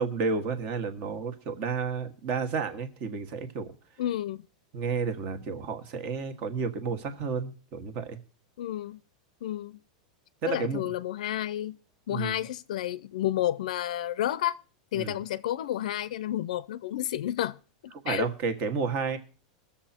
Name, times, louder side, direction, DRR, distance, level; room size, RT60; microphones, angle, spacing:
voice 1, 0.0-3.7 4.7-8.2 10.4-10.9 12.1-12.3 15.0-15.1 18.0-19.2, right 5 dB, 40° right, 1.5 m, -31 dB
voice 2, 4.0-4.4 8.6-9.0 9.4-9.8 10.5-11.8 12.1-14.6 14.9-17.6 17.8-18.3, left 12 dB, 80° left, 0.5 m, -31 dB
20.5 x 7.2 x 4.3 m
supercardioid pair, 160°, 4 cm